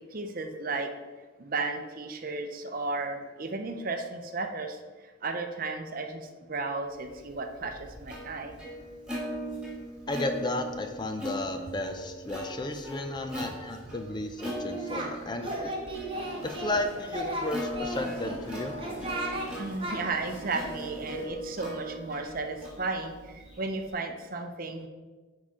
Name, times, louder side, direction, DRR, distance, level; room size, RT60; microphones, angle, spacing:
voice 1, 0.1-0.9 1.4-4.8 5.2-8.6 19.6-24.9, right 3 dB, 45° right, 6 dB, 0.6 m, -34 dB
Plucked string instrument, 7.2-23.9, equal, 5° right, 1.7 m, -40 dB
voice 2, 10.1-15.8 16.4-18.7, left 2 dB, 20° left, 6 dB, 0.4 m, -33 dB
Singing, 14.4-15.1 15.4-16.8 17.1-18.4 18.8-19.5 19.8-20.0, right 1 dB, 25° right, 1.0 m, -35 dB
sound 1, 16.1-21.3, left 1 dB, 80° left, 1.5 m, -46 dB
8.3 x 4.8 x 3.7 m, 1.3 s
head